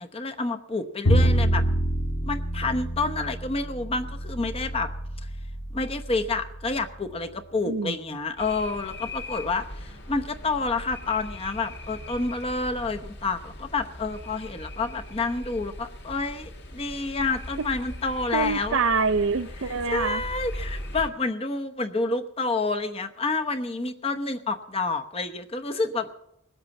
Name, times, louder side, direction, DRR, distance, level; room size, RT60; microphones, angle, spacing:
voice 1, 0.0-1.7 2.2-4.9 5.7-18.8 19.9-26.1, left 3 dB, 25° left, 7 dB, 0.9 m, -29 dB
Bowed string instrument, 1.0-7.2, right 1 dB, 85° left, 1.8 m, -27 dB
voice 2, 7.7-8.0 18.3-20.2, right 4 dB, 65° right, 13 dB, 0.6 m, -25 dB
sound 1, 8.4-21.1, left 1 dB, 50° left, 2.4 m, -40 dB
20.0 x 8.2 x 7.2 m, 0.79 s
head